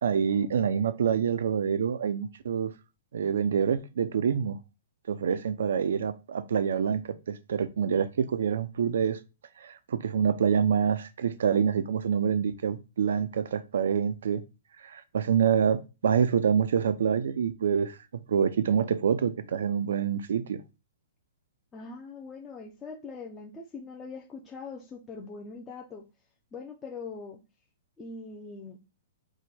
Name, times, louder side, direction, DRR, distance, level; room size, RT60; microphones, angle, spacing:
voice 1, 0.0-2.7 3.1-4.6 5.1-9.2 9.6-14.4 14.8-18.0 18.3-20.6, right 7 dB, 75° right, 0.4 m, -26 dB
voice 2, 21.7-26.0 26.5-27.4 28.0-28.8, left 4 dB, 15° left, 0.4 m, -42 dB
4.6 x 2.2 x 4.2 m
hypercardioid pair, 160°, 0 cm